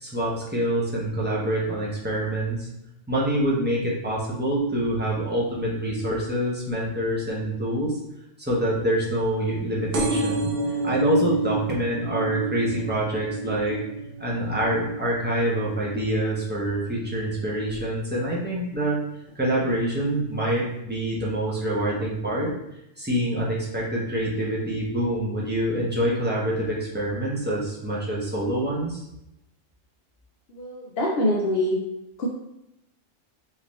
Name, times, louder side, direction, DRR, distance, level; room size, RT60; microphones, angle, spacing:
voice 1, 0.0-2.7 3.1-7.9 8.4-10.5 10.8-13.8 14.2-19.0 19.3-22.5 23.0-29.0, right 1 dB, 10° right, -6 dB, 0.7 m, -26 dB
sound 1, 9.9-17.2 17.7-18.1 19.0-19.1 19.3-19.4 19.6-19.7, right 3 dB, 50° right, 0.7 m, -30 dB
voice 2, 30.5-31.8 32.2-32.3, left 1 dB, 60° left, -3 dB, 0.7 m, -24 dB
3.9 x 2.7 x 3.1 m, 0.85 s
omnidirectional pair, 1.3 m